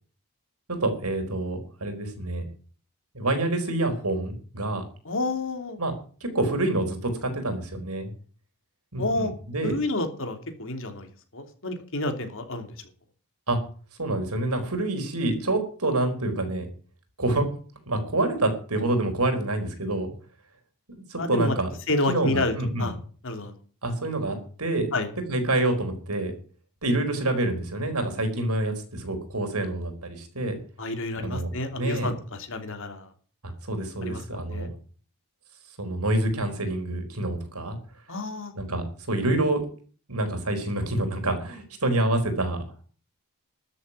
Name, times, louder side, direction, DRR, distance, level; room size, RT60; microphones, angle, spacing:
voice 1, 0.7-2.4 3.1-4.8 5.8-5.9 6.2-8.1 8.9-9.8 13.5-13.6 14.0-16.7 17.2-17.5 17.9-20.1 21.1-21.7 22.1-22.9 23.8-24.9 25.3-26.3 26.8-30.6 31.2-31.5 31.8-32.1 33.4-34.7 35.8-37.8 38.6-39.6 40.1-42.6, right 2 dB, 80° right, 6 dB, 4.5 m, -27 dB
voice 2, 5.0-5.8 9.0-9.3 9.6-11.1 11.3-12.7 21.2-21.5 21.9-23.0 23.2-23.5 24.9-25.1 30.8-32.1 32.5-33.1 34.0-34.7 38.1-38.5, left 2 dB, 60° left, 6 dB, 3.0 m, -29 dB
13.0 x 7.9 x 10.0 m, 0.42 s
head